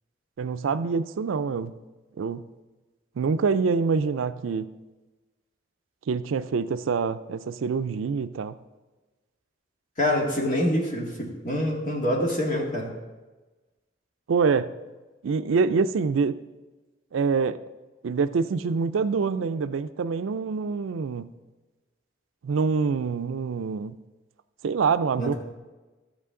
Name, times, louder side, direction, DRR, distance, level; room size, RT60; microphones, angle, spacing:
voice 1, 0.4-1.8 2.2-2.4 3.2-4.7 6.1-8.6 14.3-14.7 15.2-16.4 17.1-17.6 18.0-21.3 22.4-24.0 24.6-25.3, right 5 dB, 85° right, 12 dB, 0.4 m, -25 dB
voice 2, 10.0-12.9 25.2-25.3, left 1 dB, 40° left, -1 dB, 1.8 m, -26 dB
12.5 x 8.2 x 3.7 m, 1.2 s
head